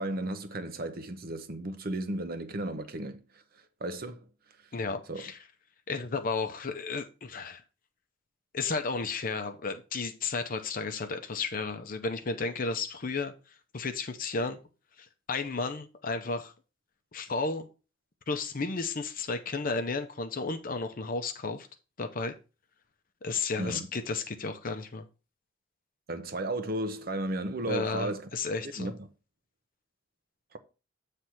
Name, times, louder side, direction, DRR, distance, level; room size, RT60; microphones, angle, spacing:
voice 1, 0.0-3.2 3.8-4.3 5.1-5.3 23.6-23.9 26.1-28.2 28.8-29.1 30.5-30.6, right 1 dB, 50° right, 0.9 m, -34 dB
voice 2, 4.7-5.4 5.9-7.6 8.5-13.3 13.7-14.6 15.0-16.5 17.1-17.7 18.3-21.7 22.0-22.3 23.2-25.1 27.6-28.9, left 4 dB, 45° left, 0.7 m, -33 dB
7.7 x 3.3 x 5.8 m
head